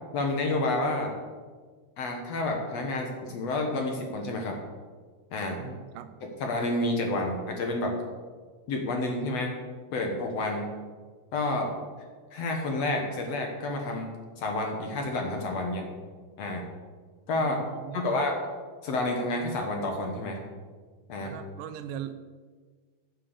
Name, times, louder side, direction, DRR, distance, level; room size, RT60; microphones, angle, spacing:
voice 1, 0.1-1.1 2.0-4.6 5.3-5.6 6.2-8.0 8.7-9.6 9.9-10.7 11.3-11.7 12.3-14.1 14.4-15.9 16.4-16.6 17.3-17.6 17.9-18.4 18.8-20.4 21.1-21.3, left 2 dB, 60° left, 2 dB, 2.1 m, -29 dB
voice 2, 5.6-6.2 17.4-18.2 21.2-22.1, right 9 dB, 80° right, 10 dB, 2.3 m, -40 dB
9.4 x 7.5 x 6.7 m, 1.5 s
omnidirectional pair, 3.8 m